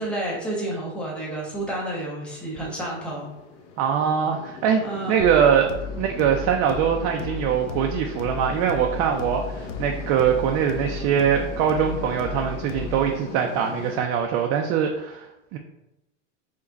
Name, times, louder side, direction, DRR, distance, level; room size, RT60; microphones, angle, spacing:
voice 1, 0.0-3.3 4.8-5.2, right 1 dB, 5° left, -4 dB, 1.0 m, -30 dB
sound 1, 2.3-14.0, left 5 dB, 55° left, 0.8 m, -39 dB
voice 2, 3.8-5.7 6.0-15.3 15.5-15.6, right 8 dB, 40° right, 2 dB, 0.4 m, -22 dB
sound 2, 5.2-13.2, left 5 dB, 85° left, 0.7 m, -35 dB
4.9 x 2.2 x 3.9 m, 0.93 s
supercardioid pair, 140°, 36 cm